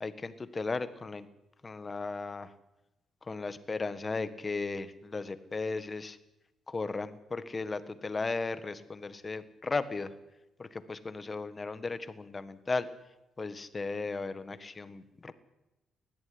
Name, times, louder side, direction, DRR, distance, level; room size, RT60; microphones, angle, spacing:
voice 1, 0.0-1.3 1.6-2.5 3.3-6.2 6.7-10.1 10.6-12.9 13.4-15.3, left 3 dB, 30° left, 12 dB, 1.6 m, -36 dB
19.5 x 14.0 x 9.7 m, 0.95 s
cardioid pair, 90°, 0 cm